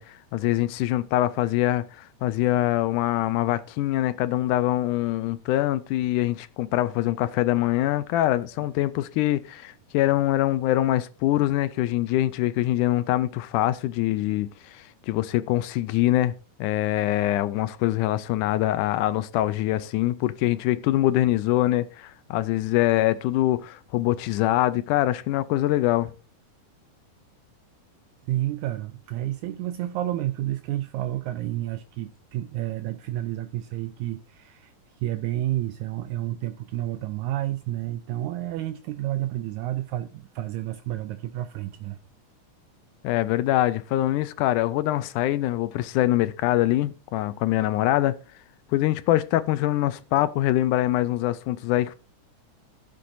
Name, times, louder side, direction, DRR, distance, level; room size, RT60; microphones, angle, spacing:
voice 1, 0.0-16.3 16.6-26.1 43.0-48.2 48.7-52.0, left 14 dB, 80° left, 2.0 m, -24 dB
voice 2, 28.3-34.7 35.0-42.0, right 14 dB, 80° right, 1.8 m, -30 dB
15.0 x 7.8 x 2.6 m
omnidirectional pair, 3.7 m